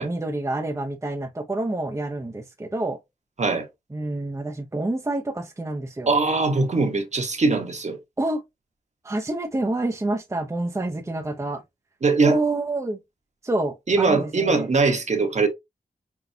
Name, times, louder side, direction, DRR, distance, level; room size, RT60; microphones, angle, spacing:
voice 1, 0.0-3.0 3.9-6.1 8.2-8.4 9.0-11.6 12.3-13.0 13.4-14.7, right 2 dB, 20° right, 0.7 m, -28 dB
voice 2, 6.1-8.0 12.0-12.4 13.9-15.5, right 3 dB, 50° right, 1.2 m, -21 dB
6.0 x 2.3 x 2.7 m
cardioid pair, 50°, 15 cm